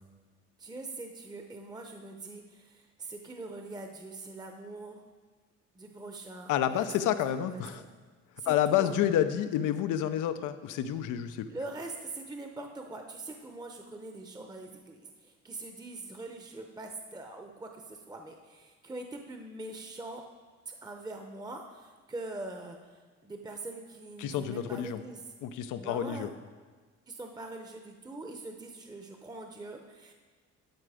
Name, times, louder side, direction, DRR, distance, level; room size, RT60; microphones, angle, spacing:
voice 1, 0.6-5.0 5.7-7.1 7.5-7.9 8.4-8.9 11.5-20.2 20.7-25.2 25.7-26.3 27.1-30.1, right 2 dB, 15° right, 4 dB, 0.8 m, -43 dB
voice 2, 6.5-7.8 8.5-11.5 24.2-25.0 25.4-26.3, left 10 dB, 85° left, 11 dB, 0.6 m, -29 dB
12.0 x 5.1 x 4.9 m, 1.5 s
cardioid pair, 90°, 30 cm